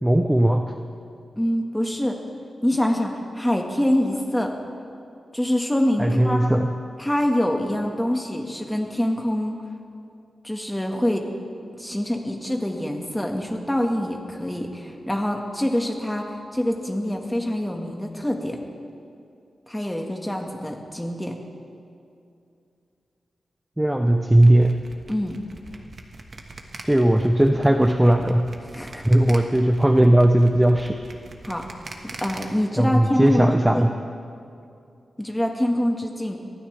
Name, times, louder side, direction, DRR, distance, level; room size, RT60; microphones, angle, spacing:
voice 1, 0.0-0.7 6.0-6.7 23.8-24.7 26.8-28.5 29.0-30.9 32.8-33.9, right 1 dB, 10° right, 5 dB, 0.6 m, -18 dB
voice 2, 1.4-2.2 2.6-4.5 5.3-6.5 7.0-9.6 10.4-11.3 11.8-18.6 19.7-21.4 25.1-25.4 28.7-29.0 31.4-31.6 32.2-33.5 33.7-33.9 35.2-36.4, left 1 dB, 5° left, 2 dB, 1.6 m, -25 dB
sound 1, 24.4-32.4, right 3 dB, 45° right, 1.4 m, -41 dB
24.0 x 16.0 x 3.4 m, 2.6 s
wide cardioid pair, 130°, 0 cm